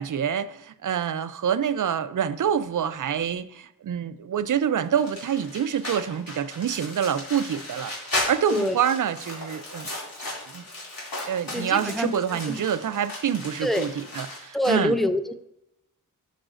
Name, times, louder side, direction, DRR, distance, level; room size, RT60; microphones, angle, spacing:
voice 1, 0.0-9.9 10.5-10.6 11.3-14.9, right 8 dB, 65° right, 14 dB, 0.4 m, -26 dB
sound 1, 5.0-14.8, left 2 dB, 85° left, 2.5 m, -36 dB
voice 2, 11.5-12.6 13.6-13.9 14.5-15.3, left 1 dB, ahead, 10 dB, 0.4 m, -26 dB
11.0 x 4.9 x 2.5 m, 0.85 s
wide cardioid pair, 95°, 34 cm